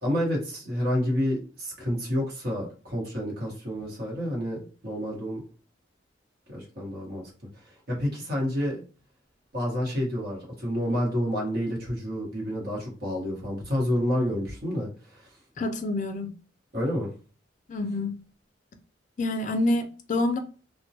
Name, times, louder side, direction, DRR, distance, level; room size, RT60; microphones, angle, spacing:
voice 1, 0.0-5.4 6.5-7.3 7.6-8.8 9.5-15.3 16.7-17.1, equal, 55° right, 1.1 m, -29 dB
voice 2, 15.6-16.3 17.7-18.2 19.2-20.4, left 2 dB, 45° left, 0.4 m, -27 dB
2.2 x 2.1 x 2.7 m
head